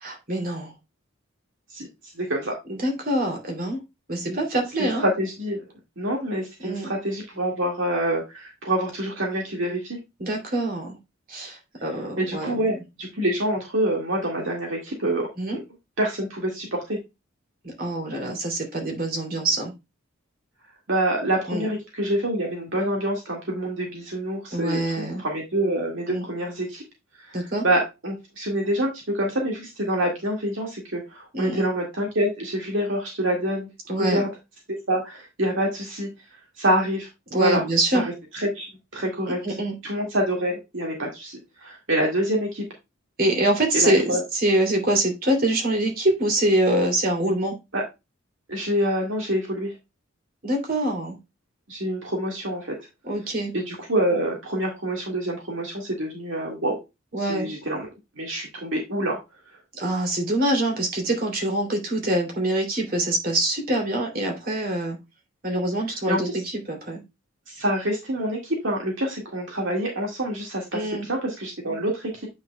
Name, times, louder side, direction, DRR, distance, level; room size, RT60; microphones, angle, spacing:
voice 1, 0.0-0.7 2.7-3.8 4.1-5.0 6.6-6.9 10.2-11.0 11.3-12.6 15.4-15.6 17.6-19.7 21.5-21.7 24.5-25.2 26.1-26.3 27.3-27.6 31.3-31.7 33.9-34.3 37.3-38.0 39.3-39.7 43.2-47.6 50.4-51.2 53.0-53.5 57.1-57.5 59.7-65.0 65.4-67.0 70.7-71.1, right 1 dB, 45° right, 2 dB, 2.9 m, -25 dB
voice 2, 2.2-2.5 4.3-4.4 4.8-5.6 6.0-10.0 12.2-15.6 16.0-17.0 20.9-26.8 27.2-27.4 27.6-33.7 34.0-34.3 34.9-36.1 36.6-37.1 37.4-37.6 37.9-38.7 38.9-39.4 39.8-42.7 43.7-44.2 47.7-47.8 48.5-49.7 51.7-52.7 53.5-56.8 57.2-57.9 58.2-59.2 66.1-66.4 67.5-72.3, right 1 dB, 65° right, 0 dB, 2.0 m, -26 dB
8.7 x 6.4 x 2.3 m, 0.23 s
head